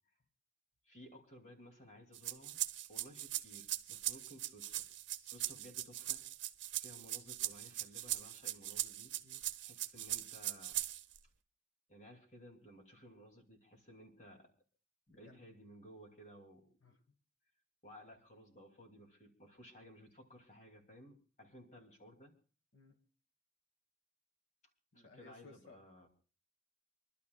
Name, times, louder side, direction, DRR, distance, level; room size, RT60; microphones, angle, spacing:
voice 1, 0.9-2.6 2.9-4.9 5.2-6.2 6.8-9.1 9.6-10.8 11.9-14.5 15.2-17.0 17.8-22.3 24.9-26.1, equal, 40° left, 1 dB, 2.8 m, -57 dB
sound 1, 2.1-11.2, right 14 dB, 85° right, 0.7 m, -40 dB
voice 2, 24.9-25.8, left 3 dB, 85° left, 4 dB, 1.6 m, -60 dB
27.5 x 12.0 x 2.4 m, 0.39 s
head